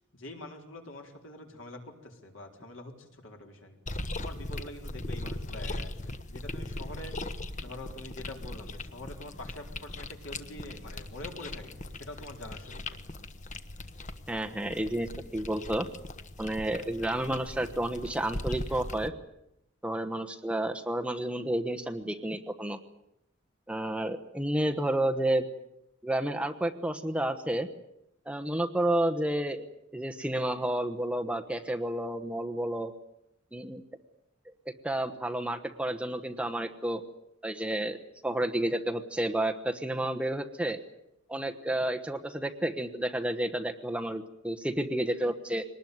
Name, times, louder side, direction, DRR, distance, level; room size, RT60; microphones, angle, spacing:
voice 1, 0.1-3.8 4.2-7.1 7.6-13.0, left 1 dB, 70° left, 3 dB, 4.3 m, -45 dB
sound 1, 3.9-19.1, left 2 dB, 40° left, 1.3 m, -39 dB
voice 2, 14.3-15.9 16.4-19.1 19.8-22.8 23.7-25.5 26.0-27.7 28.3-29.7 29.9-32.9 33.5-33.8 34.8-37.0 37.4-38.0 38.2-40.8 41.3-45.6, right 1 dB, 5° right, 5 dB, 1.1 m, -31 dB
23.5 x 19.5 x 9.5 m, 0.83 s
head